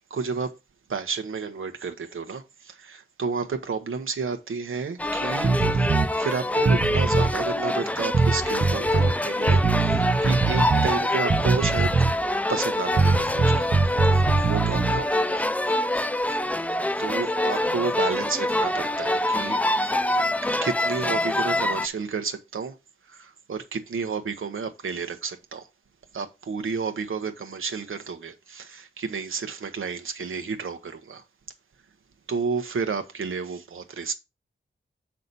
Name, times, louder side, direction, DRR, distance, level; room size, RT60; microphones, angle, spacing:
voice 1, 0.1-0.5 0.9-5.6 6.2-11.9 12.5-13.7 14.5-15.4 17.0-19.6 20.4-22.8 23.0-25.7 26.1-31.2 32.3-34.1, right 5 dB, 90° right, 1.0 m, -31 dB
sound 1, 5.0-21.9, left 1 dB, 5° left, 0.4 m, -25 dB
sound 2, 5.4-6.1 6.6-7.4 8.1-9.1 9.5-10.9 11.3-12.3 13.0-15.0, right 4 dB, 50° right, 0.8 m, -22 dB
6.6 x 5.7 x 4.1 m
cardioid pair, 45°, 20 cm